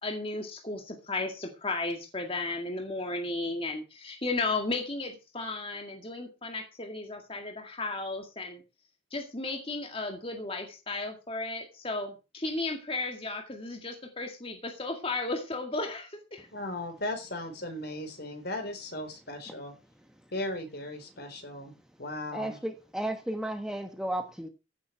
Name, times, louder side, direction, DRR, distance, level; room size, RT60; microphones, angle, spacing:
voice 1, 0.0-8.6 9.1-16.5, left 3 dB, 30° left, 2.1 m, -34 dB
voice 2, 16.5-19.7 20.3-21.7 22.0-22.6, left 1 dB, 50° left, 4.0 m, -37 dB
voice 3, 22.3-24.5, right 1 dB, 5° right, 1.3 m, -33 dB
16.0 x 7.6 x 6.0 m
head